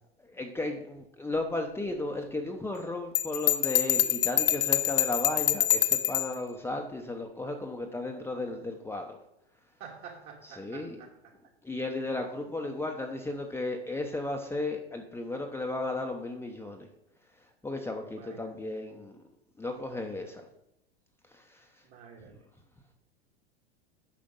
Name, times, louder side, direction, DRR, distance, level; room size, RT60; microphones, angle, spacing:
voice 1, 0.3-9.2 10.4-11.0 11.6-16.9 17.6-19.2 19.6-20.4 21.3-21.6, left 2 dB, 10° left, 2 dB, 0.8 m, -34 dB
Bell, 3.1-6.3, left 13 dB, 70° left, 0.7 m, -25 dB
voice 2, 9.8-11.1 18.0-18.5 21.8-22.3, right 6 dB, 45° right, 1 dB, 2.3 m, -48 dB
8.8 x 5.1 x 5.3 m, 0.83 s
hypercardioid pair, 90°, 31 cm